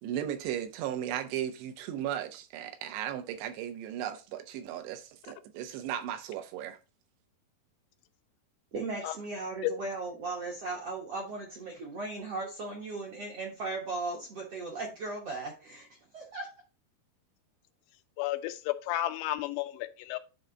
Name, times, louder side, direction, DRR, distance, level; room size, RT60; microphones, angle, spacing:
voice 1, 0.0-6.8, right 10 dB, 85° right, 3.0 m, -36 dB
voice 2, 8.7-15.9 16.1-16.5, right 3 dB, 65° right, 1.5 m, -37 dB
voice 3, 18.2-20.2, left 15 dB, 85° left, 2.8 m, -32 dB
9.8 x 3.4 x 3.9 m
omnidirectional pair, 4.8 m